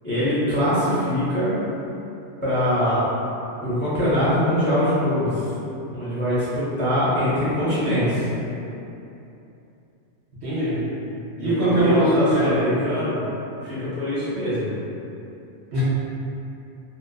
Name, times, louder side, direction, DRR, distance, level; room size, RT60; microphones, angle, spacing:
voice 1, 0.0-1.6 2.4-3.1 3.6-5.5 5.9-8.3 11.4-13.3 13.6-14.7, equal, 15° left, -12 dB, 0.5 m, -23 dB
voice 2, 10.4-10.8 11.4-12.5 15.7-15.8, right 1 dB, 65° right, -9 dB, 1.0 m, -20 dB
2.5 x 2.3 x 2.3 m, 2.8 s
omnidirectional pair, 1.2 m